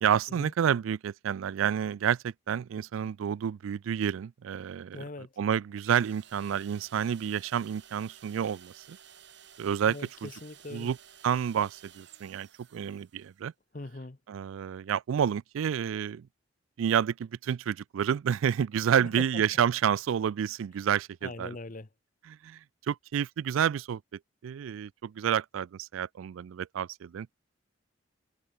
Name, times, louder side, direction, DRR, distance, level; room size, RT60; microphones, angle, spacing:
voice 1, 0.0-9.0 9.6-10.3 10.7-11.0 11.2-13.5 14.3-16.3 16.8-21.6 22.3-22.6 22.9-24.0 24.4-27.3, right 8 dB, 80° right, 0.3 m, -29 dB
voice 2, 4.9-5.3 9.9-10.9 13.7-14.2 19.0-19.1 21.2-21.9, left 2 dB, 40° left, 0.8 m, -41 dB
sound 1, 5.8-13.4, right 9 dB, 60° right, 3.2 m, -54 dB
head